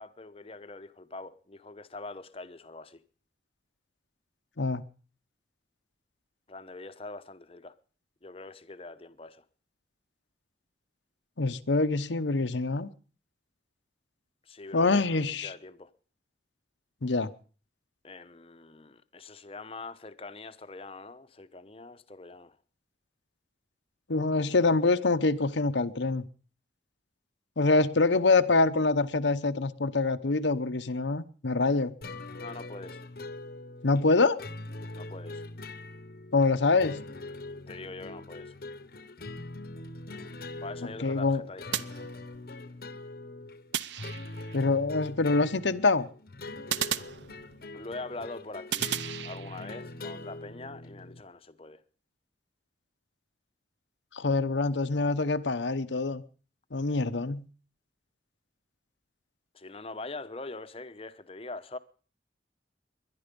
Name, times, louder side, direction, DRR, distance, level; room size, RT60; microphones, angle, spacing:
voice 1, 0.0-3.0 6.5-7.7 8.2-9.4 14.5-15.9 18.0-22.6 32.4-33.0 34.9-35.4 37.7-38.5 40.6-42.0 47.7-48.9 49.2-51.8 59.5-61.8, left 3 dB, 30° left, 0.9 m, -43 dB
voice 2, 11.4-12.9 14.7-15.5 17.0-17.3 24.1-26.2 27.6-31.9 33.8-34.4 36.3-37.0 41.0-41.4 44.5-46.1 54.1-56.2 56.7-57.4, left 3 dB, 80° left, 0.9 m, -25 dB
sound 1, 32.0-51.2, left 2 dB, 55° left, 1.1 m, -42 dB
sound 2, 41.7-42.6 43.7-44.6 46.7-47.8 48.7-49.8, right 10 dB, 75° right, 0.6 m, -35 dB
21.5 x 11.0 x 5.3 m
head